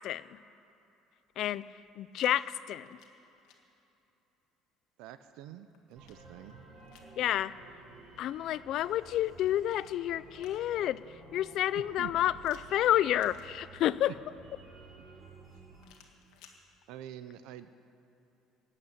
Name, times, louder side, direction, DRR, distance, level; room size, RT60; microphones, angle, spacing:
voice 1, 0.0-0.4 1.4-1.6 2.0-2.9 7.2-7.5 8.2-11.0 11.3-14.1, left 12 dB, 55° left, 17 dB, 0.4 m, -29 dB
sound 1, 1.3-2.3 2.7-3.6 5.3-7.2 9.1-10.9 12.4-14.0 15.8-16.6, left 7 dB, 80° left, 1.8 m, -61 dB
voice 2, 5.0-6.6 11.7-12.1 14.1-14.2 16.9-17.7, right 12 dB, 80° right, 12 dB, 0.5 m, -46 dB
sound 2, 5.9-15.9, right 3 dB, 40° right, 2.9 m, -53 dB
15.0 x 8.7 x 8.9 m, 3.0 s
cardioid pair, 155°, 0 cm